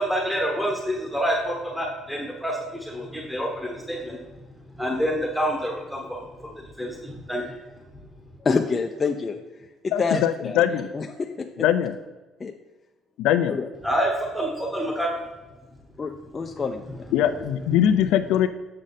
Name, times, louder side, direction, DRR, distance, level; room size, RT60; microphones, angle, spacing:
voice 1, 0.0-4.2 4.8-7.6 13.8-15.1, equal, ahead, -1 dB, 1.0 m, -27 dB
voice 2, 8.4-9.4 9.8-11.5 12.4-12.5 13.5-13.7 16.0-17.1, left 4 dB, 25° left, 3 dB, 0.4 m, -27 dB
voice 3, 9.9-10.9 11.6-12.0 13.2-13.6 17.1-18.5, left 10 dB, 85° left, 9 dB, 0.4 m, -21 dB
7.6 x 6.2 x 4.1 m, 1.2 s
cardioid pair, 145°, 0 cm